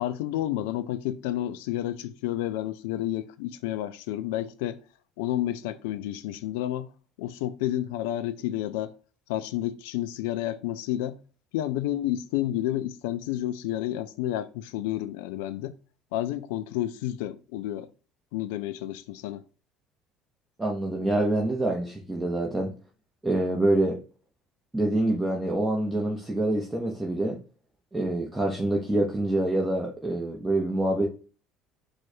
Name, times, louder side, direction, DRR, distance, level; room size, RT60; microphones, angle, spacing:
voice 1, 0.0-4.8 5.2-6.9 7.2-8.9 9.3-11.2 11.5-15.8 16.1-17.9 18.3-19.4, left 13 dB, 75° left, 0.3 m, -30 dB
voice 2, 20.6-22.7 23.2-24.0 24.7-27.4 27.9-31.1, right 1 dB, 10° right, 1.0 m, -26 dB
4.4 x 2.3 x 4.3 m
hypercardioid pair, 65°, 0 cm